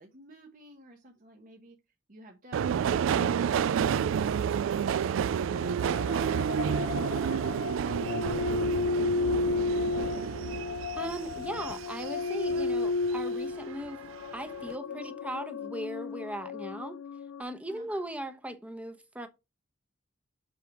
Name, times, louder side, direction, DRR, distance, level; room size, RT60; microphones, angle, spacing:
voice 1, 0.0-1.8 14.9-15.1 17.7-17.9, right 1 dB, 45° right, 1.2 m, -52 dB
Subway metro underground, 2.5-13.2 13.6-14.3 14.6-14.7, right 8 dB, 75° right, 0.3 m, -30 dB
sound 1, 5.6-17.4, left 4 dB, 80° left, 0.3 m, -33 dB
voice 2, 10.9-14.0 14.3-17.0 17.4-19.3, right 1 dB, 5° right, 1.0 m, -38 dB
7.5 x 3.4 x 5.9 m
head